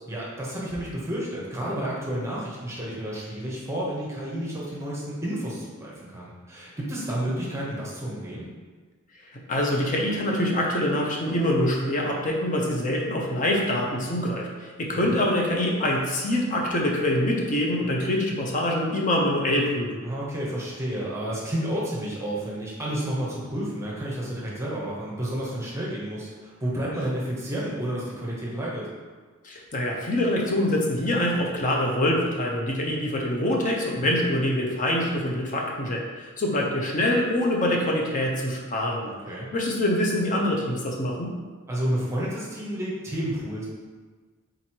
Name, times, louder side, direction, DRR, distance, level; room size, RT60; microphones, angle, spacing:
voice 1, 0.1-8.5 15.1-15.2 20.0-28.9 34.0-34.2 39.3-39.5 41.7-43.7, right 1 dB, 15° right, -5 dB, 0.8 m, -31 dB
voice 2, 9.3-20.0 29.4-39.1 39.5-41.3, left 1 dB, 35° left, -1 dB, 0.7 m, -25 dB
3.8 x 3.1 x 4.4 m, 1.4 s
head